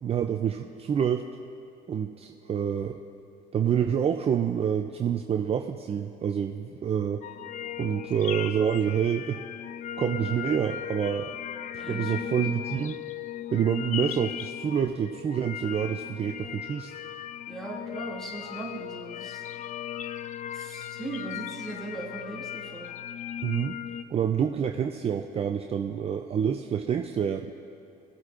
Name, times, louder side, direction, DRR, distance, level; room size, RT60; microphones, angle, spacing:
voice 1, 0.0-1.2 1.9-3.0 3.5-7.2 7.8-9.4 10.0-11.4 11.7-13.0 13.5-16.9 23.4-23.8 24.1-27.5, right 8 dB, 35° right, 4 dB, 0.5 m, -27 dB
sound 1, 7.2-24.0, left 10 dB, 50° left, 0.4 m, -37 dB
voice 2, 11.8-12.4 17.5-19.5 20.5-22.9, right 2 dB, ahead, -4 dB, 2.5 m, -39 dB
20.5 x 7.9 x 2.5 m, 2.8 s
cardioid pair, 110°, 17 cm